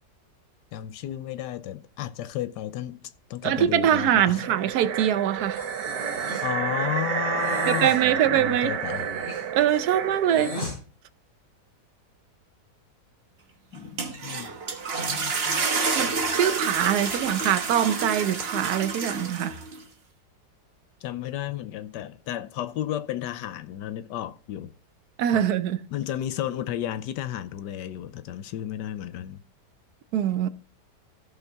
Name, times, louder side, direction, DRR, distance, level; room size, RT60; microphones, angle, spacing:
voice 1, 0.7-4.4 6.4-9.1 13.7-14.6 15.1-15.7 21.0-24.7 25.3-25.5 25.9-29.4, left 12 dB, 85° left, 1.3 m, -33 dB
voice 2, 3.4-5.6 7.7-8.7 9.5-10.6 15.9-19.6 25.2-25.8 30.1-30.5, right 10 dB, 70° right, 1.1 m, -23 dB
sound 1, 4.3-10.7, right 8 dB, 85° right, 1.4 m, -30 dB
Breathing, 5.5-6.6 7.4-8.0 8.8-10.8, left 1 dB, 60° left, 5.8 m, -37 dB
sound 2, 13.8-19.8, right 4 dB, 40° right, 1.2 m, -29 dB
15.0 x 5.8 x 3.5 m
omnidirectional pair, 1.8 m